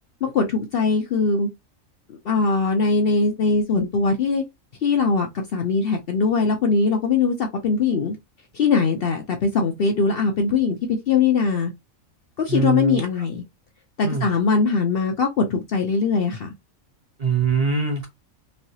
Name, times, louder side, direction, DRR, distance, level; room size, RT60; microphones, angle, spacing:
voice 1, 0.2-1.5 2.1-4.4 4.8-8.2 8.5-10.8 11.1-11.7 12.4-13.4 14.0-16.5, left 4 dB, 60° left, 0.7 m, -21 dB
voice 2, 12.5-13.0 14.0-14.3 17.2-18.1, right 5 dB, 35° right, 0.7 m, -22 dB
3.1 x 2.8 x 2.7 m
omnidirectional pair, 1.4 m